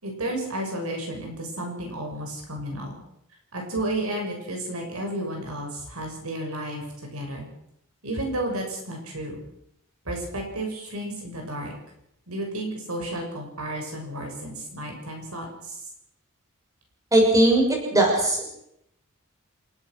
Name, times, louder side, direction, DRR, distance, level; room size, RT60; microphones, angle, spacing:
voice 1, 0.0-3.0 3.5-7.5 8.0-9.4 10.1-11.7 12.3-15.8, right 1 dB, 80° right, 2 dB, 6.9 m, -32 dB
voice 2, 17.1-18.5, right 1 dB, 15° right, 0 dB, 6.5 m, -19 dB
28.0 x 16.0 x 6.3 m, 0.77 s
head